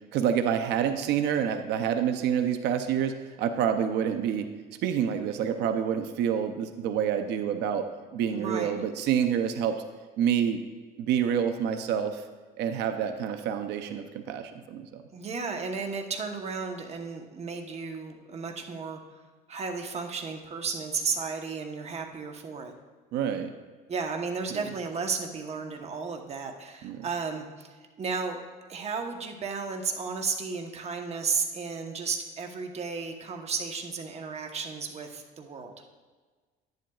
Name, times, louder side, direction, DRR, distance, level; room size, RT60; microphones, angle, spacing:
voice 1, 0.1-4.5 4.8-7.9 8.1-9.8 10.2-10.6 11.0-12.2 12.6-15.0 23.1-23.5 24.5-24.6 26.8-27.0, right 8 dB, 80° right, 8 dB, 0.6 m, -27 dB
voice 2, 8.3-8.7 15.1-19.0 19.5-22.7 23.9-27.7 28.0-28.4 28.7-35.7, right 5 dB, 40° right, 4 dB, 1.0 m, -33 dB
11.0 x 10.5 x 2.4 m, 1.4 s
cardioid pair, 110°, 17 cm